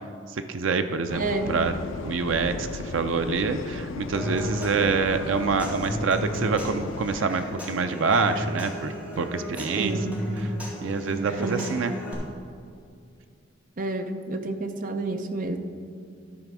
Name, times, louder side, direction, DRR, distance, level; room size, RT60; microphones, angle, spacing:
voice 1, 0.5-1.7 2.0-9.9 10.8-11.9, right 4 dB, 90° right, 8 dB, 0.5 m, -26 dB
sound 1, 1.1-7.2, left 4 dB, 80° left, 0.4 m, -36 dB
voice 2, 1.1-1.5 4.6-5.0 9.8-10.2 11.4-11.7 13.8-15.6, right 2 dB, 45° right, 7 dB, 0.6 m, -30 dB
Human voice / Acoustic guitar / Percussion, 4.1-12.1, equal, 5° right, 2.0 m, -34 dB
12.5 x 4.2 x 6.0 m, 2.3 s
head